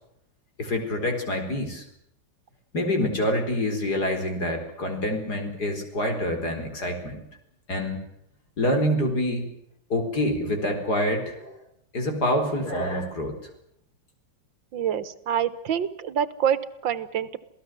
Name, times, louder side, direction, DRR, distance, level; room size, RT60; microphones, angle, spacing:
voice 1, 0.6-1.8 2.7-7.2 7.7-8.0 8.6-9.4 9.9-11.6 11.9-13.3, left 1 dB, 55° left, 5 dB, 4.9 m, -26 dB
voice 2, 14.7-17.4, right 9 dB, 85° right, 14 dB, 2.0 m, -26 dB
28.0 x 17.5 x 7.7 m, 0.76 s
omnidirectional pair, 2.0 m